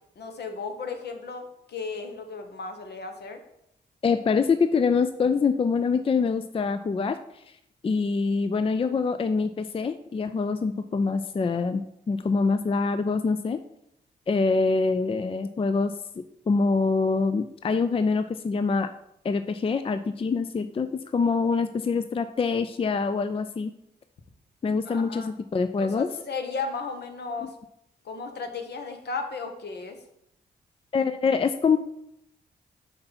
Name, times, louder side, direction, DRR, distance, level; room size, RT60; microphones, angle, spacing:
voice 1, 0.2-3.4 24.8-25.3 25.8-27.5 28.0-30.0, left 4 dB, 65° left, 6 dB, 1.1 m, -35 dB
voice 2, 4.0-7.2 7.8-13.6 14.3-16.0 16.5-18.9 19.2-23.7 24.6-26.1 27.4-27.5 30.9-31.8, left 4 dB, 30° left, 10 dB, 0.4 m, -25 dB
5.7 x 5.3 x 4.1 m, 0.78 s
supercardioid pair, 50°, 18 cm